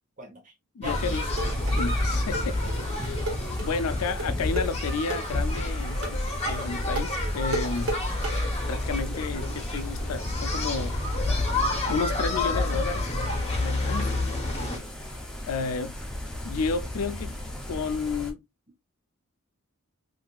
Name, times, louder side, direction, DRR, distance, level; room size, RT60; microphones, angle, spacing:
voice 1, 0.2-0.5 0.8-1.2 3.0-3.3 6.0-6.1 11.6-11.7 14.1-14.9, right 1 dB, 35° right, 1.1 m, -42 dB
voice 2, 0.7-1.3 1.7-2.7 3.6-8.0 8.7-11.0 11.9-13.3 13.6-14.1 15.5-16.0 16.4-17.4 17.7-18.4, left 4 dB, 75° left, 0.4 m, -31 dB
sound 1, 0.8-14.8, left 2 dB, 30° left, 0.9 m, -29 dB
sound 2, 0.8-18.3, left 1 dB, 5° left, 0.6 m, -35 dB
sound 3, 0.9-8.4, right 1 dB, 65° right, 1.3 m, -34 dB
3.6 x 2.6 x 2.3 m
head